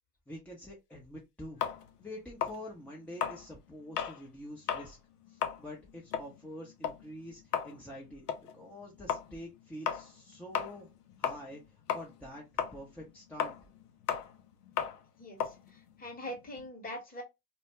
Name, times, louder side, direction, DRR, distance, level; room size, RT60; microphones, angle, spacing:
voice 1, 0.3-1.7 2.0-5.0 5.3-8.3 8.5-10.9 11.2-12.5 12.7-13.5, equal, 5° left, 0.6 m, -46 dB
sound 1, 1.6-4.2 4.6-4.9 5.2-11.6 11.9-16.7, left 8 dB, 85° left, 0.5 m, -36 dB
voice 2, 15.2-17.2, left 1 dB, 20° left, 1.0 m, -43 dB
2.2 x 2.0 x 2.9 m
hypercardioid pair, 75°, 46 cm